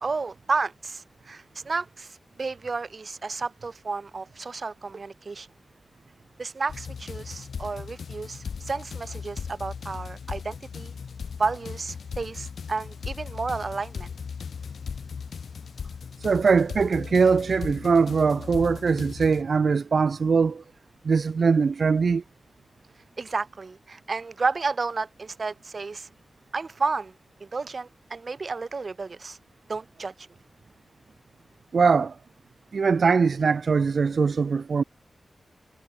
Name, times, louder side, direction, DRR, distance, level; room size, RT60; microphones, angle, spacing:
voice 1, 0.0-5.5 6.4-10.9 11.4-14.1 23.2-26.1 26.5-29.4 29.7-30.1, right 4 dB, 50° right, 1.5 m, -31 dB
sound 1, 6.7-19.4, left 6 dB, 85° left, 5.3 m, -37 dB
voice 2, 16.2-20.6 21.0-22.2 31.7-32.2 32.7-34.8, right 5 dB, 65° right, 0.4 m, -21 dB
wide cardioid pair, 105°, 0 cm